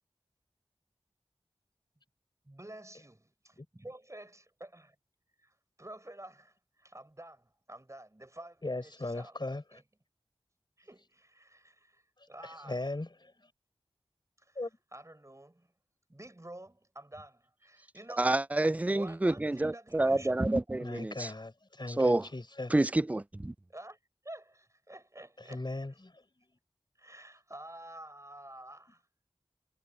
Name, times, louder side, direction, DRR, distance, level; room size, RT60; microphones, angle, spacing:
voice 1, 2.5-5.0 5.4-9.4 9.7-9.8 10.8-12.0 12.3-12.8 14.4-14.6 14.9-15.7 16.1-18.3 18.8-20.6 23.7-24.0 24.2-25.7 27.0-29.0, right 1 dB, 30° right, 7.1 m, -50 dB
voice 2, 8.6-9.8 12.7-13.3 14.6-14.7 20.8-22.7 25.5-26.2, left 2 dB, 45° left, 4.4 m, -38 dB
voice 3, 18.2-21.3 22.0-22.3 22.7-23.5, right 2 dB, 15° right, 0.4 m, -28 dB
wide cardioid pair, 60°, 10 cm